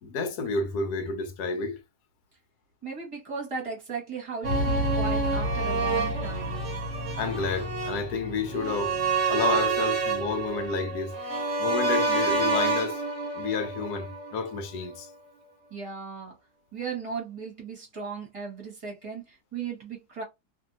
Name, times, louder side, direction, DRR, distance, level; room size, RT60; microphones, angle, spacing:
voice 1, 0.0-1.8 7.2-9.0 9.3-11.2 11.6-13.0 13.4-15.1, left 4 dB, 75° left, 1.1 m, -30 dB
voice 2, 2.8-6.5 15.7-16.4 16.7-20.2, right 5 dB, 20° right, 1.2 m, -36 dB
sound 1, 4.4-14.6 14.9-15.0, right 3 dB, 45° right, 1.1 m, -28 dB
2.7 x 2.6 x 2.6 m
omnidirectional pair, 1.8 m